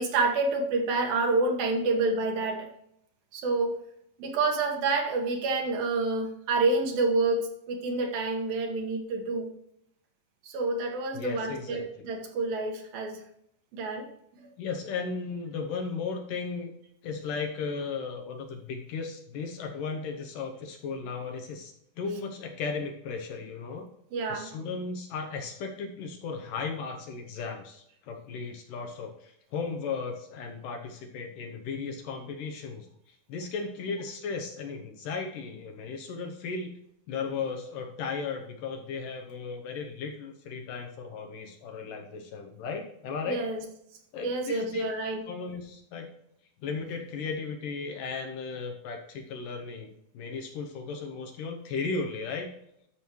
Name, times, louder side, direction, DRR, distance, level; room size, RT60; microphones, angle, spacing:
voice 1, 0.0-2.6 3.3-3.8 4.2-9.5 10.4-13.2 13.7-14.1 24.1-24.5 43.3-43.6 44.2-45.2, right 3 dB, 70° right, 2 dB, 3.0 m, -28 dB
voice 2, 11.1-11.8 14.6-16.7 17.0-23.9 24.3-36.8 37.1-43.4 44.1-44.8 45.3-46.1 46.6-52.5, left 5 dB, 70° left, 3 dB, 2.2 m, -36 dB
12.5 x 6.2 x 3.0 m, 0.75 s
omnidirectional pair, 4.4 m